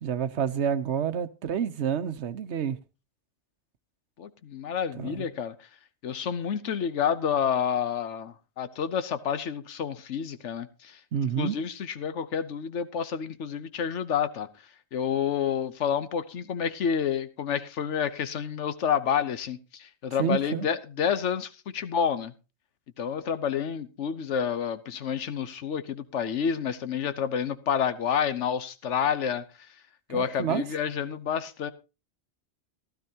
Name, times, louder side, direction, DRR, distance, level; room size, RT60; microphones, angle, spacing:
voice 1, 0.0-2.8 4.9-5.3 11.1-11.6 20.2-20.7 30.1-30.6, right 8 dB, 75° right, 1.1 m, -28 dB
voice 2, 4.2-5.5 6.0-11.0 11.4-14.5 14.9-22.3 23.0-29.4 30.1-31.7, left 7 dB, 80° left, 1.2 m, -29 dB
15.5 x 12.5 x 2.8 m
omnidirectional pair, 1.2 m